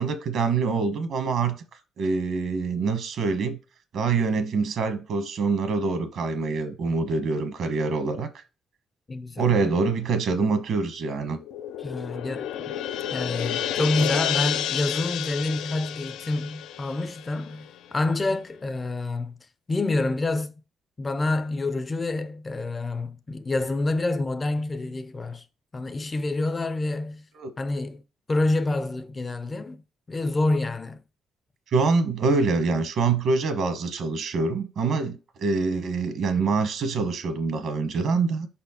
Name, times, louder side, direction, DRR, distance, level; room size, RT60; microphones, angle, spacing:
voice 1, 0.0-1.5 2.0-3.6 3.9-8.3 9.4-11.4 27.3-27.5 31.7-38.5, right 4 dB, 70° right, 1.1 m, -25 dB
voice 2, 9.1-9.5 11.8-12.8 13.1-19.3 19.7-20.5 21.0-25.4 25.7-27.3 27.6-28.0 28.3-29.8 30.1-31.0, left 2 dB, 30° left, 0.4 m, -27 dB
sound 1, 11.3-17.9, left 10 dB, 85° left, 0.4 m, -31 dB
5.3 x 4.2 x 4.2 m
cardioid pair, 90°, 0 cm